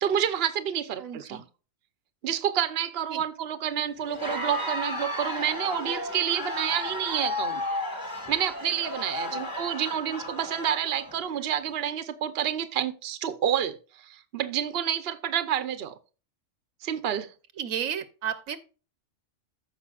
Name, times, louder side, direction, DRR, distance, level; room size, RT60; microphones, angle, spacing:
voice 1, 0.0-1.4 2.2-7.6 8.3-15.9 16.8-17.3, right 9 dB, 55° right, 0.9 m, -29 dB
voice 2, 1.0-1.4 3.1-3.2 9.3-9.4 17.6-18.6, right 9 dB, 80° right, 1.3 m, -33 dB
Crowd, 4.0-11.5, left 1 dB, 15° left, 1.8 m, -34 dB
14.5 x 5.4 x 2.4 m
omnidirectional pair, 1.4 m